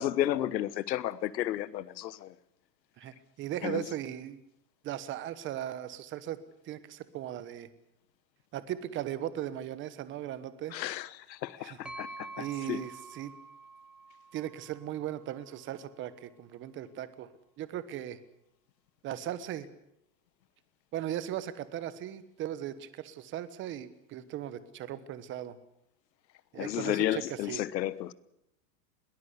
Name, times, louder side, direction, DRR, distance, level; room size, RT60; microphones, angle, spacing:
voice 1, 0.0-2.3 3.6-3.8 10.7-12.8 26.5-28.1, left 12 dB, 90° left, 1.3 m, -32 dB
voice 2, 3.0-4.4 4.8-6.4 6.6-7.7 8.5-10.7 11.6-11.8 12.4-13.3 14.3-17.3 17.6-18.2 19.0-19.7 20.9-25.6 26.5-27.6, right 11 dB, 25° right, 1.2 m, -38 dB
sound 1, 11.8-15.6, right 2 dB, ahead, 2.3 m, -47 dB
22.0 x 18.5 x 8.3 m
supercardioid pair, 155°, 49 cm